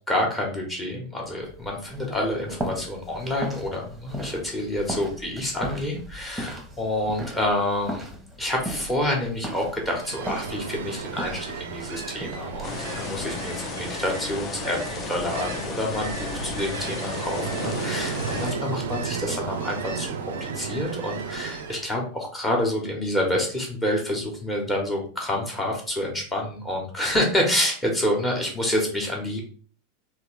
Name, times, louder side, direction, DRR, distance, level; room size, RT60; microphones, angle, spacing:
voice 1, 0.1-8.0 8.4-20.1 20.4-29.4, left 1 dB, 15° left, -1 dB, 1.1 m, -28 dB
sound 1, 1.4-13.7, right 1 dB, 10° right, 0.9 m, -38 dB
Ocean, 9.7-21.9, right 6 dB, 65° right, 0.4 m, -34 dB
sound 2, 12.6-18.5, left 5 dB, 35° left, 0.6 m, -34 dB
3.5 x 2.5 x 3.2 m, 0.43 s
figure-of-eight pair, 85°, 0 cm